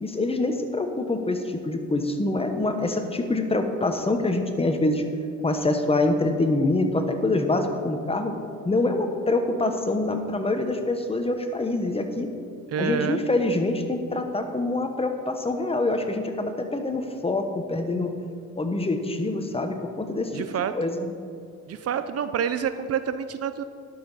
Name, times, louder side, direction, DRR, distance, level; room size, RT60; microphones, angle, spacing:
voice 1, 0.0-5.0 5.4-8.3 8.6-12.3 12.8-18.1 18.6-20.4 20.7-21.1, left 2 dB, 20° left, 6 dB, 1.1 m, -25 dB
voice 2, 12.7-13.2 20.3-20.7 21.7-23.6, right 8 dB, 55° right, 11 dB, 0.5 m, -28 dB
11.0 x 6.9 x 5.5 m, 2.3 s
cardioid pair, 90°, 30 cm